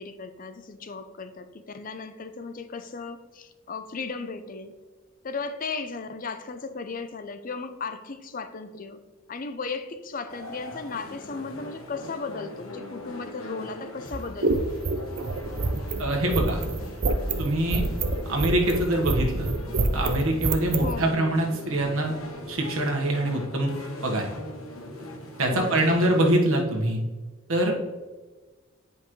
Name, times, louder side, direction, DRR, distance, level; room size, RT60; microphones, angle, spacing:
voice 1, 0.0-4.8 5.2-9.0 9.3-14.7 20.8-21.2 25.5-26.0, left 4 dB, 40° left, 10 dB, 0.5 m, -36 dB
sound 1, 10.3-26.3, left 1 dB, 80° left, 1.4 m, -40 dB
sound 2, 14.1-20.9, right 3 dB, 50° right, 0.5 m, -26 dB
voice 2, 16.0-16.6 17.4-17.8 18.2-19.5 19.9-22.1 22.5-23.7 24.0-24.3 25.4-27.0 27.5-27.8, right 1 dB, 75° right, 1 dB, 1.4 m, -24 dB
10.0 x 5.3 x 3.1 m, 1.3 s
head